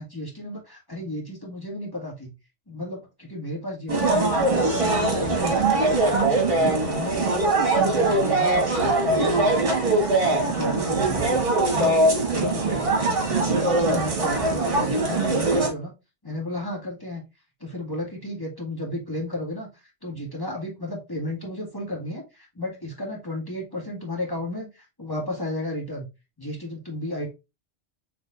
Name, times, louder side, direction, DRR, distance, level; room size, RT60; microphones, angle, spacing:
voice 1, 0.0-2.3 2.7-5.7 6.0-7.4 7.7-9.6 10.3-11.4 11.7-13.0 13.4-15.9 16.2-17.2 17.6-19.7 20.0-26.1 26.4-27.3, left 1 dB, 20° left, -1 dB, 1.9 m, -33 dB
sound 1, 3.9-15.7, right 2 dB, 50° right, 1.8 m, -22 dB
6.4 x 3.3 x 2.5 m, 0.24 s
omnidirectional pair, 1.2 m